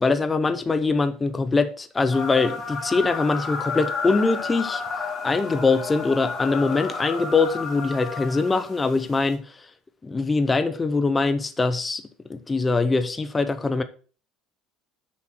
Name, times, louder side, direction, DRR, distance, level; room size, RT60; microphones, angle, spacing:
voice 1, 0.0-4.8 5.2-9.4 10.0-12.0 12.3-13.8, left 3 dB, 20° left, 0.9 m, -23 dB
sound 1, 2.1-9.3, left 4 dB, 35° left, 2.8 m, -32 dB
7.2 x 6.1 x 6.3 m
supercardioid pair, 100°, 0 cm